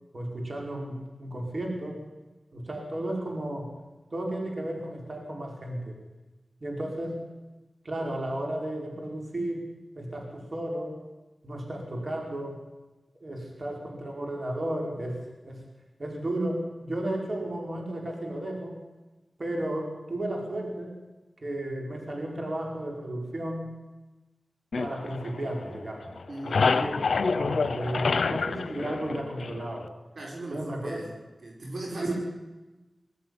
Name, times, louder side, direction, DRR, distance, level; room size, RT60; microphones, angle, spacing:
voice 1, 0.1-2.0 2.5-3.7 4.1-5.9 6.6-7.2 7.8-9.7 9.9-11.0 11.4-12.6 13.2-15.6 16.0-18.8 19.4-21.0 21.4-23.7 24.8-26.1 26.4-29.9 30.5-31.0 32.0-32.1, right 1 dB, 50° right, 1 dB, 5.0 m, -33 dB
sound 1, 24.7-25.9 26.2-29.9, left 4 dB, 80° left, 0.8 m, -28 dB
voice 2, 26.3-26.6 30.2-31.1 31.4-32.1, right 2 dB, 75° right, -1 dB, 5.3 m, -38 dB
20.5 x 13.5 x 9.7 m, 1.1 s
cardioid pair, 45°, 0 cm